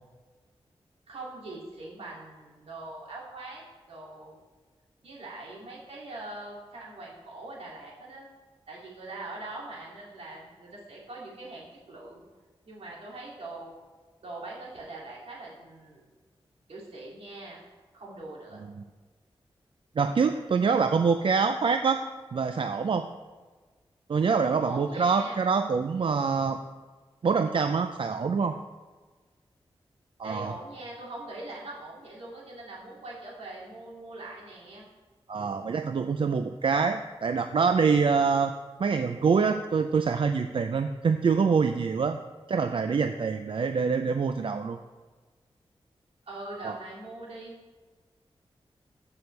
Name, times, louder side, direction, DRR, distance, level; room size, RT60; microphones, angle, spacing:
voice 1, 1.1-3.6 3.9-4.4 5.0-8.3 8.7-12.2 12.6-13.7 14.2-16.0 16.7-17.6 17.9-18.6 24.6-25.4 30.2-34.8 46.3-47.5, right 2 dB, 80° right, -4 dB, 2.5 m, -42 dB
voice 2, 20.0-22.0 22.3-23.1 24.1-26.6 27.2-28.6 30.2-30.5 35.3-38.5 38.8-42.2 42.5-44.8 46.6-46.8, right 5 dB, 60° right, 8 dB, 0.4 m, -25 dB
14.0 x 6.3 x 3.3 m, 1.3 s
cardioid pair, 65°, 10 cm